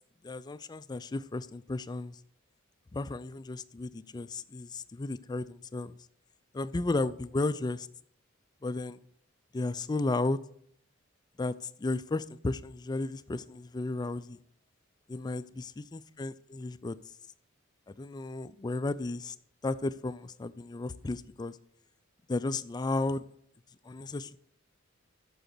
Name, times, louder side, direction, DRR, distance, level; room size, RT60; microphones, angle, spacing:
voice 1, 0.2-2.2 2.9-6.0 6.5-7.9 8.6-9.0 9.5-10.4 11.4-14.4 15.1-17.0 17.9-19.4 19.6-21.6 22.3-23.2 23.8-24.4, left 2 dB, 20° left, 15 dB, 0.3 m, -34 dB
9.0 x 7.0 x 6.7 m, 0.68 s
head